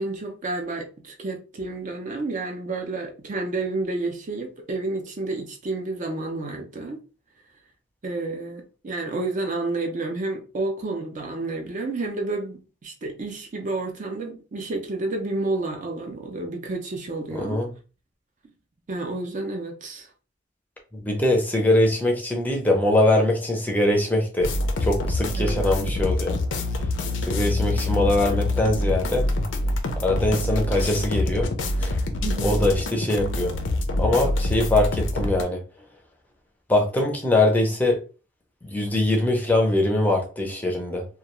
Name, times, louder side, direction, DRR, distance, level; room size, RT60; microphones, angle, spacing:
voice 1, 0.0-7.0 8.0-17.6 18.9-20.1 25.4-25.7 32.2-32.6, right 2 dB, 40° right, 0.5 m, -30 dB
voice 2, 17.3-17.7 20.9-24.5 24.8-26.4 27.2-29.3 30.0-31.5 31.8-32.0 32.4-33.5 34.0-35.6 36.7-38.0 38.6-41.0, left 1 dB, 10° left, 0.5 m, -22 dB
sound 1, 24.4-35.4, left 1 dB, 85° left, 0.5 m, -25 dB
2.3 x 2.2 x 2.9 m
head